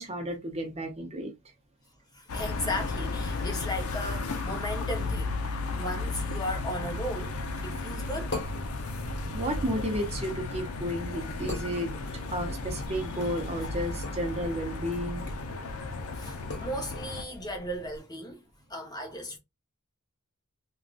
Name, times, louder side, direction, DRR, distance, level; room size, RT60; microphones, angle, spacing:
voice 1, 0.0-1.3 9.3-11.9 12.3-15.3, equal, 30° right, 0.6 m, -32 dB
voice 2, 2.1-5.4 5.7-7.3 7.6-8.4 16.1-18.4 18.7-19.4, left 1 dB, 20° left, 0.8 m, -36 dB
sound 1, 2.3-17.2, left 3 dB, 80° left, 0.6 m, -34 dB
sound 2, 7.5-18.0, left 2 dB, 50° left, 1.3 m, -43 dB
3.5 x 2.3 x 2.4 m
head